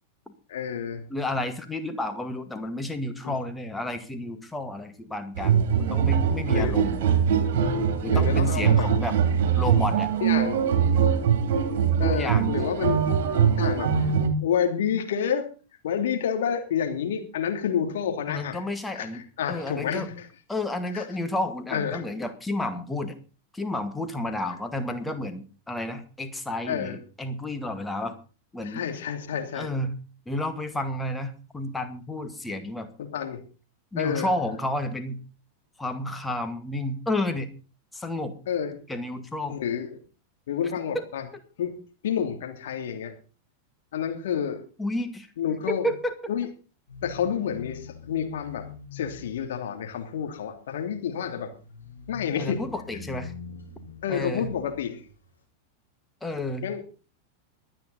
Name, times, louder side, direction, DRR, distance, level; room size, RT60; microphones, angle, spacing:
voice 1, 0.5-1.0 3.2-3.3 6.4-6.9 8.0-8.9 10.2-10.6 12.0-13.0 13.6-13.9 14.4-15.4 15.8-18.6 18.9-20.3 20.9-21.1 21.7-22.0 26.7-26.9 28.6-29.7 33.0-33.4 34.0-34.3 38.5-38.8 39.5-39.9 40.5-41.2 41.6-41.7 42.0-43.1 43.9-44.6 45.4-45.9 46.3-46.4 47.0-48.7 48.9-51.5 52.1-52.6 54.0-55.0 56.6-56.8, left 8 dB, 60° left, 4 dB, 2.9 m, -29 dB
voice 2, 1.1-7.1 8.0-9.2 9.6-10.1 12.1-12.5 18.3-20.1 20.5-23.2 23.5-28.2 28.5-28.8 29.5-30.0 30.3-32.9 33.9-35.2 35.8-37.5 37.9-38.3 38.9-39.6 40.9-41.0 44.8-45.3 45.7-46.1 52.4-53.3 54.1-54.5 56.2-56.7, left 1 dB, 10° left, 7 dB, 2.0 m, -31 dB
sound 1, 5.4-14.3, right 7 dB, 55° right, 2.7 m, -22 dB
sound 2, 46.9-55.2, left 6 dB, 80° left, 6.3 m, -44 dB
23.0 x 9.1 x 4.1 m, 0.36 s
figure-of-eight pair, 90°, 0 cm